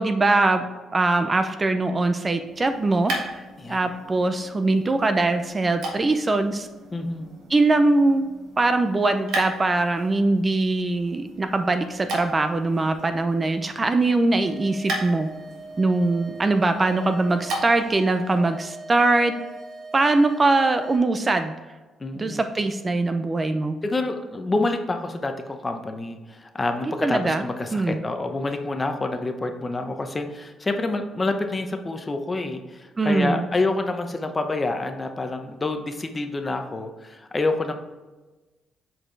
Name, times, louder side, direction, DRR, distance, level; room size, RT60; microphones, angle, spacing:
voice 1, 0.0-3.4 3.7-6.7 7.5-8.3 8.6-15.3 15.8-19.3 19.9-21.5 22.1-23.7 26.8-27.4 27.7-28.0 33.0-33.5, right 2 dB, 25° right, 8 dB, 0.5 m, -22 dB
sound 1, 2.4-18.0, right 1 dB, 80° right, 1.5 m, -37 dB
voice 2, 6.9-7.3 22.0-22.4 23.8-37.7, left 2 dB, 25° left, 6 dB, 0.8 m, -27 dB
sound 2, 14.3-21.0, right 2 dB, 60° right, 1.5 m, -41 dB
7.5 x 4.3 x 3.3 m, 1.2 s
cardioid pair, 90°, 0 cm